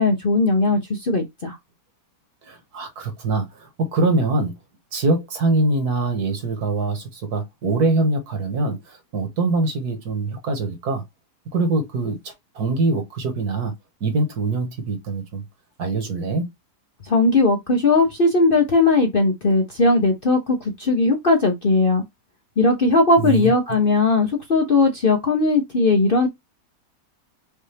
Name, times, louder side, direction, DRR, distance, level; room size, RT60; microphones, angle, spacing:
voice 1, 0.0-1.6 17.0-22.0 22.6-26.3, left 3 dB, 45° left, 0.8 m, -18 dB
voice 2, 2.4-4.5 4.9-11.0 11.5-13.7 14.0-15.4 15.8-16.5 23.2-23.5, right 3 dB, 65° right, 1.9 m, -23 dB
5.5 x 2.6 x 3.3 m
omnidirectional pair, 1.8 m